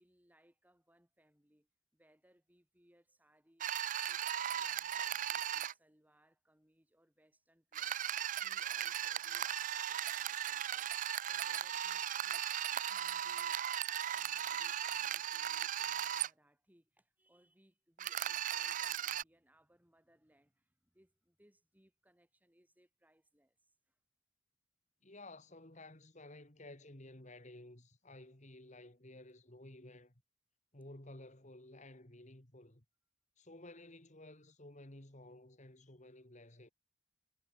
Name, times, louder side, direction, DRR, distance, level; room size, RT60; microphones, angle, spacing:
voice 1, 0.0-13.6 14.1-24.0, equal, 10° right, 3.5 m, -70 dB
sound 1, 3.6-5.7 7.7-16.3 18.0-19.2, right 10 dB, 40° right, 0.4 m, -37 dB
voice 2, 25.0-30.1 30.7-32.8 33.4-36.7, left 1 dB, 35° left, 2.7 m, -54 dB
head